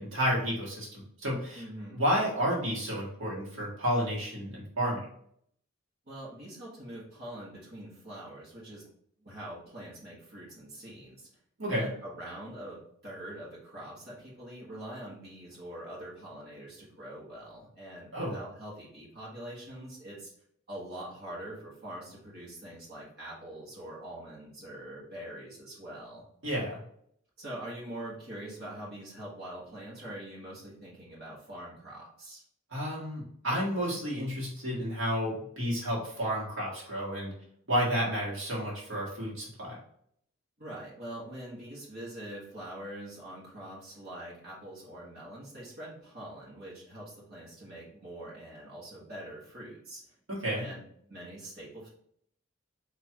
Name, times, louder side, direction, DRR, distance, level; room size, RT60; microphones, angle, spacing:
voice 1, 0.0-1.6 1.9-5.0 11.6-11.9 18.1-18.3 26.4-26.8 32.7-37.3 37.7-39.8 50.3-50.7, equal, 70° right, -5 dB, 1.7 m, -31 dB
voice 2, 1.6-2.0 6.0-8.8 9.2-11.3 11.7-20.3 20.7-26.2 27.4-32.4 40.6-50.0 50.5-51.9, right 1 dB, 50° right, -7 dB, 1.6 m, -44 dB
4.5 x 3.0 x 3.6 m, 0.68 s
head